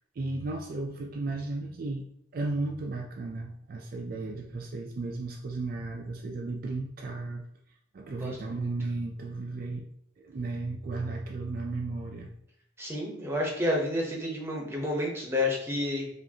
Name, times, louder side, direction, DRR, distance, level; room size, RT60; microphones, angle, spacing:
voice 1, 0.2-2.1 2.3-7.4 7.9-9.9 10.2-12.3, right 3 dB, 50° right, 1 dB, 0.3 m, -34 dB
voice 2, 8.2-8.7 12.8-16.1, left 1 dB, 15° right, -1 dB, 0.8 m, -30 dB
4.8 x 2.5 x 2.7 m, 0.71 s
head